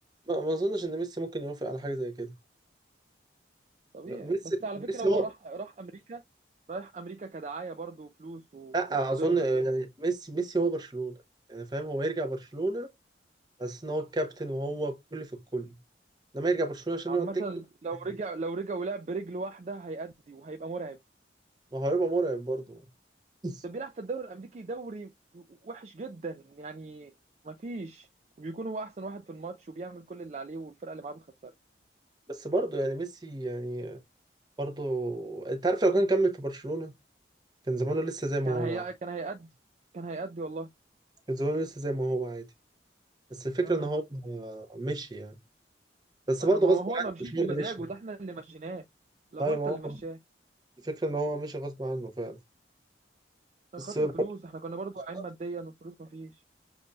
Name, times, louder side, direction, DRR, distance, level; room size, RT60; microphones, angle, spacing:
voice 1, 0.3-2.3 4.1-4.4 5.0-5.2 8.7-11.1 11.5-12.9 13.6-15.7 16.3-17.4 21.7-22.8 23.4-23.6 32.3-34.0 34.6-36.9 37.7-38.8 41.3-42.4 43.3-45.3 46.3-47.0 47.3-47.7 49.4-50.0 50.8-52.4 53.8-54.1, right 2 dB, 20° right, 0.8 m, -29 dB
voice 2, 3.9-6.2 6.7-8.7 9.2-9.4 17.1-21.0 23.6-27.1 27.4-28.1 28.4-31.5 38.5-39.5 39.9-40.7 43.6-43.9 46.4-48.8 49.3-50.2 53.7-56.4, right 3 dB, 40° right, 0.3 m, -38 dB
6.9 x 2.6 x 2.2 m
head